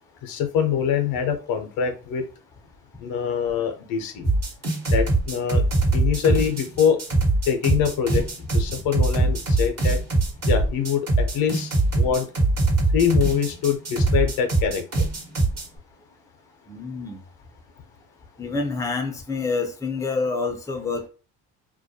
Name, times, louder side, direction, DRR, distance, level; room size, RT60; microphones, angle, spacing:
voice 1, 0.2-2.2 3.0-4.3 4.9-5.6 5.9-7.0 7.5-8.2 8.5-10.0 10.5-11.7 12.0-12.2 12.9-15.1, left 7 dB, 65° left, 7 dB, 0.6 m, -24 dB
sound 1, 4.2-15.7, right 2 dB, 40° right, 1.2 m, -22 dB
voice 2, 16.7-17.2 18.4-21.1, left 4 dB, 10° left, 4 dB, 0.6 m, -27 dB
2.3 x 2.1 x 2.7 m, 0.37 s
hypercardioid pair, 65°, 38 cm